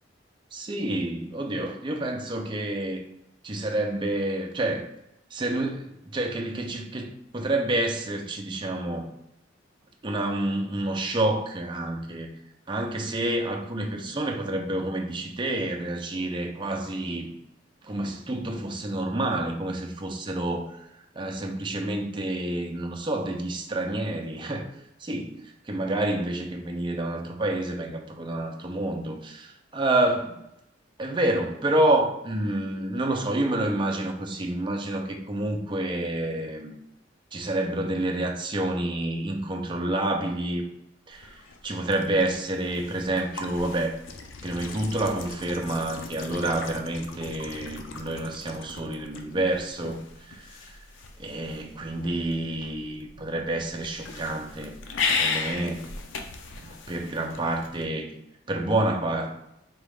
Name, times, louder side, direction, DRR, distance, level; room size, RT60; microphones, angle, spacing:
voice 1, 0.5-3.0 3.4-4.9 5.3-9.1 10.0-12.3 12.7-17.3 17.8-20.9 21.2-24.7 25.0-30.4 31.0-36.7 37.3-40.6 41.1-44.0 44.4-50.8 51.2-54.8 55.0-55.9 56.6-58.1 58.5-59.4, right 1 dB, 25° right, 2 dB, 0.5 m, -28 dB
sound 1, 41.1-57.8, left 4 dB, 90° left, 0.5 m, -36 dB
4.1 x 2.4 x 3.4 m, 0.82 s
head